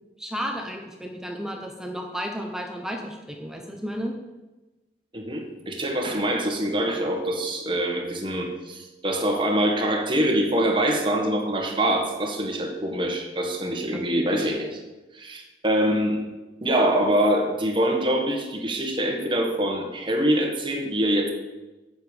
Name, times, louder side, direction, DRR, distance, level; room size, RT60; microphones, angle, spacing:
voice 1, 0.2-4.1, equal, 5° right, 2 dB, 1.0 m, -33 dB
voice 2, 5.1-14.8 15.1-16.2 16.6-21.3, right 1 dB, 30° right, 2 dB, 1.7 m, -24 dB
8.2 x 7.1 x 8.1 m, 1.1 s
head